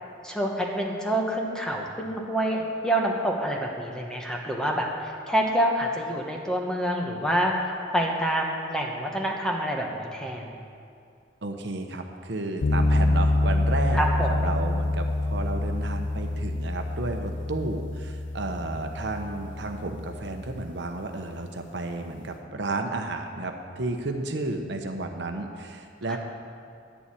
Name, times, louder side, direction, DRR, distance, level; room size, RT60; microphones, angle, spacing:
voice 1, 0.2-10.6 13.9-14.5 26.1-26.2, right 1 dB, 5° left, 0 dB, 1.2 m, -27 dB
voice 2, 11.4-26.2, right 2 dB, 65° right, 4 dB, 0.9 m, -32 dB
sound 1, 12.6-20.8, left 2 dB, 75° left, 0.6 m, -27 dB
10.5 x 7.0 x 8.6 m, 2.4 s
head